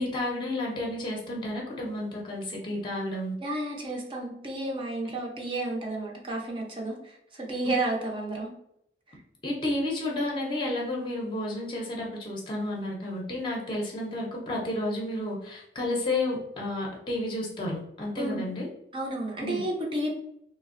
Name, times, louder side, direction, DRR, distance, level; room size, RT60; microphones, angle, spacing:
voice 1, 0.0-3.3 7.6-7.7 9.4-18.7 19.4-19.6, left 1 dB, 25° left, -2 dB, 0.6 m, -31 dB
voice 2, 3.4-8.5 18.2-18.4 18.9-20.1, right 2 dB, 30° right, -1 dB, 0.5 m, -31 dB
3.3 x 2.0 x 2.5 m, 0.74 s
head